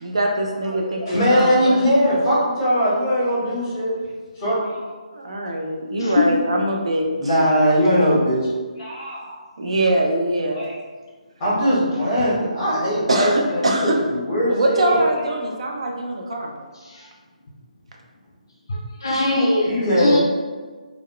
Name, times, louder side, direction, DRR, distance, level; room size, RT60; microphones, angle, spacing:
voice 1, 0.0-1.9 5.1-7.1 9.6-10.7 13.1-14.0 14.5-16.6, right 1 dB, 50° right, 1 dB, 0.3 m, -23 dB
voice 2, 0.6-3.9 4.3-4.8 7.2-8.5 8.8-9.2 10.5-10.8 11.4-15.0 19.6-20.2, equal, 15° left, -8 dB, 0.8 m, -20 dB
voice 3, 6.0-6.3 16.8-17.1 18.7-20.2, left 2 dB, 35° left, -3 dB, 0.4 m, -22 dB
2.2 x 2.1 x 3.6 m, 1.4 s
hypercardioid pair, 180°, 4 cm